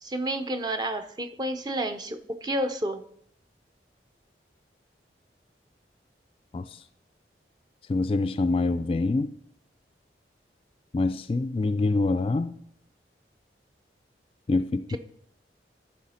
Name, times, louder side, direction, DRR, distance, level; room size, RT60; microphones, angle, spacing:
voice 1, 0.0-3.0 14.9-15.0, right 1 dB, 25° right, 0.6 m, -30 dB
voice 2, 7.9-9.3 10.9-12.6 14.5-15.0, left 3 dB, 30° left, 0.3 m, -25 dB
14.0 x 5.6 x 4.3 m
head